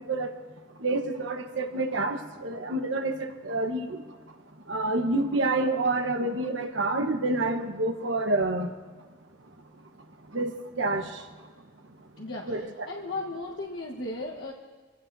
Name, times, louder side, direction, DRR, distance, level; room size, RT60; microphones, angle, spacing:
voice 1, 0.8-4.0 4.7-8.7 10.3-10.5 10.8-11.0 12.5-12.9, right 2 dB, 80° right, 5 dB, 1.2 m, -28 dB
voice 2, 12.2-14.5, left 2 dB, 70° left, -2 dB, 1.3 m, -36 dB
26.0 x 16.0 x 2.7 m, 1.4 s
head